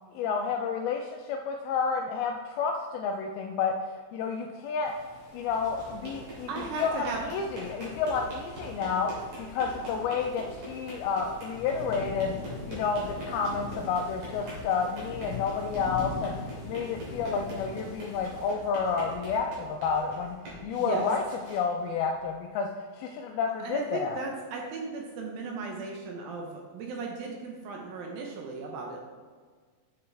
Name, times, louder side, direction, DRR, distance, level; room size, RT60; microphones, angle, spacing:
voice 1, 0.1-5.0 5.3-9.1 9.4-16.4 16.7-20.4 20.6-21.2 21.5-22.7 23.0-24.2, left 5 dB, 85° left, 3 dB, 2.2 m, -30 dB
sound 1, 4.9-18.5, left 4 dB, 65° left, 2.8 m, -43 dB
sound 2, 5.4-22.4, right 1 dB, 50° right, 3.5 m, -44 dB
voice 2, 6.5-7.2 20.8-21.1 23.6-29.0, right 4 dB, 75° right, 0 dB, 2.3 m, -36 dB
7.8 x 6.8 x 3.4 m, 1.6 s
omnidirectional pair, 4.8 m